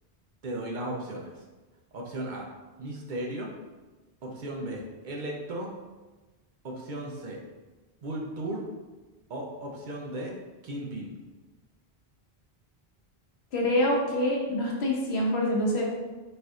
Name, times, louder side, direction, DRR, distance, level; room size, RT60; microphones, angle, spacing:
voice 1, 0.4-1.3 1.9-2.5 2.8-3.5 4.2-5.7 6.6-7.4 8.0-8.6 9.3-10.3 10.6-11.2, right 1 dB, 55° right, -1 dB, 0.7 m, -35 dB
voice 2, 13.5-15.8, left 1 dB, 85° left, -2 dB, 1.1 m, -26 dB
4.2 x 2.6 x 2.4 m, 1.2 s
omnidirectional pair, 1.0 m